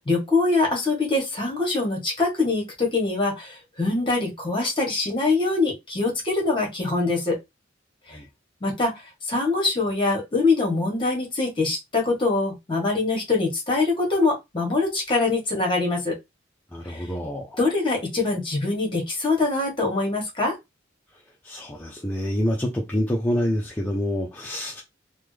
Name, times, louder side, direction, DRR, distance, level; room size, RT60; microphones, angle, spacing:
voice 1, 0.0-7.4 8.1-8.2 8.6-9.0 9.3-16.2 16.9-17.1 17.6-20.5, left 3 dB, 25° left, 1.4 m, -24 dB
voice 2, 16.7-17.6 21.4-24.8, equal, 10° left, 0.5 m, -27 dB
3.5 x 2.2 x 3.2 m
head